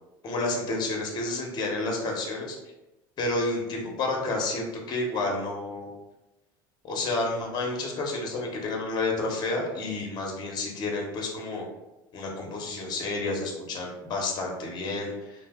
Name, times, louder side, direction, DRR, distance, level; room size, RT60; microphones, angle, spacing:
voice 1, 0.2-2.6 3.2-5.9 6.8-11.6 12.1-15.5, left 2 dB, 40° left, 0 dB, 0.8 m, -30 dB
2.6 x 2.0 x 3.4 m, 1.0 s
hypercardioid pair, 90°, 11 cm